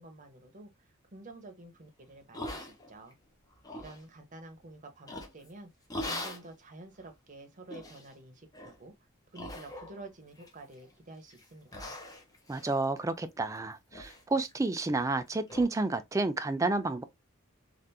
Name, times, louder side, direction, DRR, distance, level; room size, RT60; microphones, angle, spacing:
voice 1, 0.0-3.2 3.8-5.7 6.1-8.9 9.3-11.9, right 2 dB, 35° right, 0.8 m, -50 dB
sound 1, 2.3-3.1 3.5-4.0 5.1-5.5 5.9-6.5 7.0-7.1 7.7-8.1 8.5-8.8 9.3-10.1 10.4-10.9 11.3-11.4 11.7-13.6 13.9-14.2 14.5-14.6 15.0-15.1 15.5-15.7, left 1 dB, 20° left, 0.7 m, -41 dB
voice 2, 12.5-17.0, right 2 dB, 15° right, 0.3 m, -30 dB
3.4 x 2.5 x 2.7 m
head